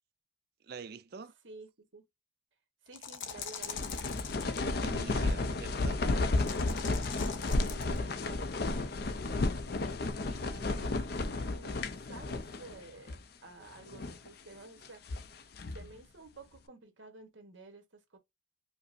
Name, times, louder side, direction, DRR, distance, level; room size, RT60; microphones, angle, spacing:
voice 1, 0.7-1.3 4.6-6.0, right 5 dB, 50° right, 0.4 m, -46 dB
voice 2, 1.4-2.0 2.8-3.9 7.2-8.9 10.2-13.2 13.4-15.4 15.7-18.2, right 3 dB, 70° right, 1.2 m, -52 dB
sound 1, 2.9-4.6 6.3-8.0, left 7 dB, 70° left, 0.8 m, -42 dB
sound 2, 3.3-12.8 13.1-13.2 13.8-14.3 14.8-15.9, left 2 dB, 50° left, 0.5 m, -33 dB
5.0 x 2.1 x 2.6 m
head